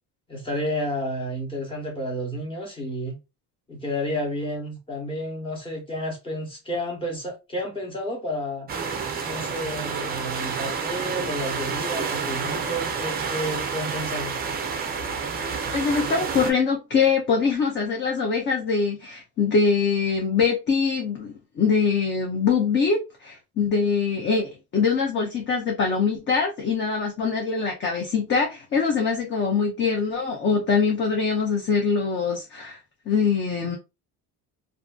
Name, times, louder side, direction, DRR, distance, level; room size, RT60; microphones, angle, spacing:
voice 1, 0.3-3.2 3.7-8.7 9.2-14.4, equal, 15° left, 0.9 m, -31 dB
sound 1, 8.7-16.5, right 5 dB, 25° right, 0.4 m, -29 dB
voice 2, 15.7-32.8 33.1-33.8, left 5 dB, 30° left, 0.5 m, -23 dB
2.5 x 2.5 x 2.3 m
cardioid pair, 155°, 38 cm